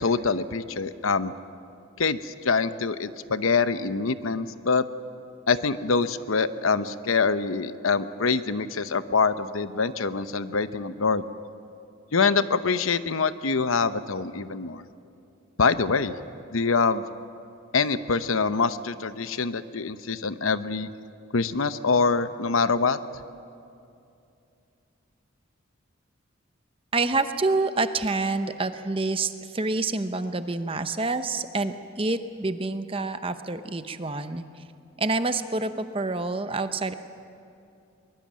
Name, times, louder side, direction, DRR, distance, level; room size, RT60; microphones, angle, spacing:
voice 1, 0.0-1.3 2.0-4.9 5.5-11.2 12.1-14.8 15.6-16.1 16.5-17.0 17.7-20.9 21.3-23.0, left 4 dB, 80° left, 12 dB, 0.8 m, -25 dB
voice 2, 26.9-34.4 35.0-36.9, right 3 dB, 25° right, 10 dB, 0.8 m, -27 dB
23.0 x 21.0 x 7.5 m, 2.6 s
head